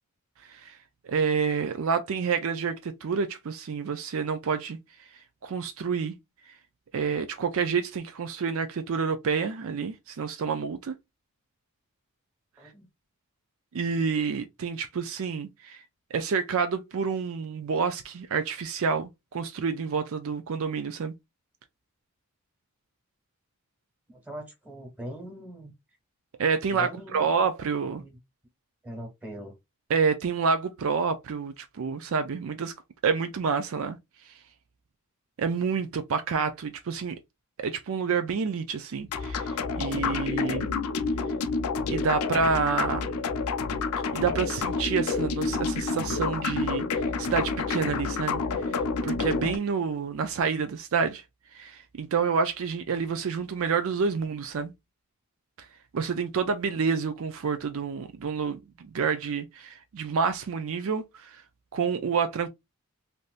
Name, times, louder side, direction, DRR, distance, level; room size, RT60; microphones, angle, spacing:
voice 1, 1.0-4.8 5.4-6.2 6.9-11.0 13.7-15.8 16.1-21.1 26.4-28.0 29.9-32.7 33.0-34.0 34.3-34.4 35.4-37.2 37.6-40.7 41.9-43.2 44.1-51.2 51.5-54.7 55.9-61.4 61.7-62.5, right 5 dB, 65° right, 0.4 m, -28 dB
voice 2, 24.1-25.7 26.7-27.3 27.9-28.2 28.8-29.6, equal, 5° right, 1.3 m, -41 dB
sound 1, 39.1-49.6, left 4 dB, 85° left, 0.4 m, -29 dB
3.4 x 2.6 x 2.4 m
head